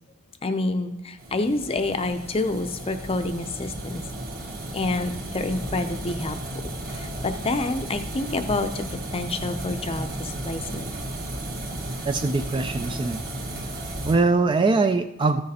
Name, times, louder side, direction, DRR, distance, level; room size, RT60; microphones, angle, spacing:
voice 1, 0.4-4.0 4.7-6.4 6.9-8.8 9.1-10.9, left 2 dB, 25° left, 8 dB, 0.5 m, -28 dB
sound 1, 1.2-14.1, right 1 dB, 40° right, 1.6 m, -34 dB
voice 2, 12.0-13.2 14.0-15.4, right 3 dB, 20° right, 8 dB, 0.3 m, -22 dB
13.5 x 6.6 x 4.2 m, 0.91 s
head